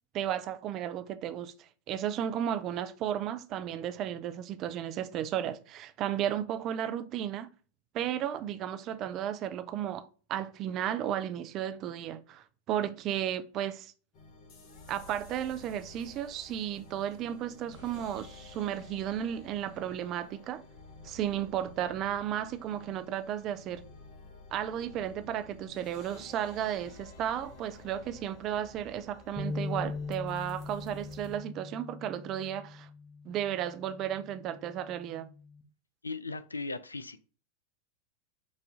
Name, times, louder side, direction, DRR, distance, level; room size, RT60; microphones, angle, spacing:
voice 1, 0.1-1.5 1.9-7.5 7.9-13.9 14.9-20.6 21.0-23.8 24.5-32.9 33.3-35.3, right 10 dB, 35° right, 0.4 m, -34 dB
sound 1, 14.1-31.4, left 3 dB, 45° left, 1.1 m, -52 dB
sound 2, 29.4-35.6, left 3 dB, 10° left, 0.9 m, -41 dB
voice 2, 36.0-37.2, left 3 dB, 80° left, 0.4 m, -37 dB
5.4 x 2.6 x 3.5 m
figure-of-eight pair, 90°, 0 cm